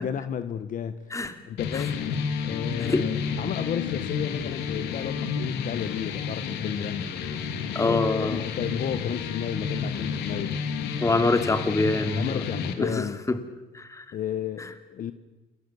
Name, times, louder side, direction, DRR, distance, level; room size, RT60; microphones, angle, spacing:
voice 1, 0.0-1.1 1.5-2.0 2.4-7.0 7.8-10.7 12.1-13.2 14.1-15.1, left 9 dB, 50° left, 12 dB, 1.4 m, -33 dB
sound 1, 1.6-12.7, left 6 dB, 85° left, 3.1 m, -31 dB
voice 2, 7.7-8.4 11.0-12.4 12.8-13.4 13.7-14.2 14.6-14.7, left 3 dB, 20° left, 9 dB, 2.7 m, -25 dB
28.5 x 22.5 x 7.2 m, 1.1 s
cardioid pair, 110°, 17 cm